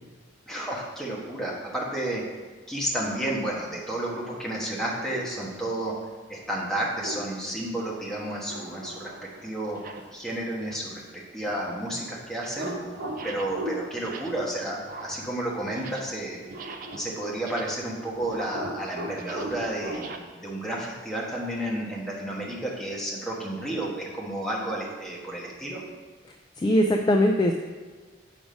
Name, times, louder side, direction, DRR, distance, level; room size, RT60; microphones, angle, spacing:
voice 1, 0.5-2.2 2.7-5.9 6.3-9.1 9.4-9.8 10.1-10.9 11.3-12.7 13.2-16.4 17.0-20.1 20.4-25.8, right 1 dB, 5° left, -5 dB, 1.3 m, -31 dB
sound 1, 4.8-5.4 6.8-7.5 8.5-9.6 12.5-13.9 16.5-18.1 18.4-20.1, right 1 dB, 75° right, 1.2 m, -38 dB
sound 2, 8.1-8.3 9.0-9.1 9.6-10.1 10.5-11.0 11.4-11.9 12.2-12.7 13.1-13.6 13.9-14.5 14.8-16.2 16.5-20.2, right 4 dB, 45° right, 0.6 m, -43 dB
voice 2, 26.6-27.5, left 1 dB, 20° left, 3 dB, 0.3 m, -21 dB
7.5 x 5.0 x 5.1 m, 1.4 s
head